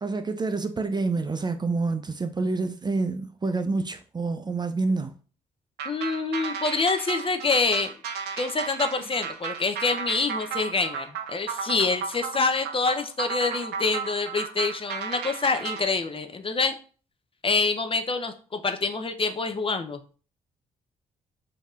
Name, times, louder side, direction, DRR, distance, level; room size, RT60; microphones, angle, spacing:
voice 1, 0.0-5.1, right 3 dB, 25° right, 0.5 m, -27 dB
voice 2, 5.8-7.9 8.4-16.7 17.4-20.0, left 4 dB, 35° left, 0.6 m, -26 dB
sound 1, 5.8-15.9, right 6 dB, 75° right, 0.5 m, -34 dB
5.3 x 2.8 x 2.4 m
supercardioid pair, 50°, 17 cm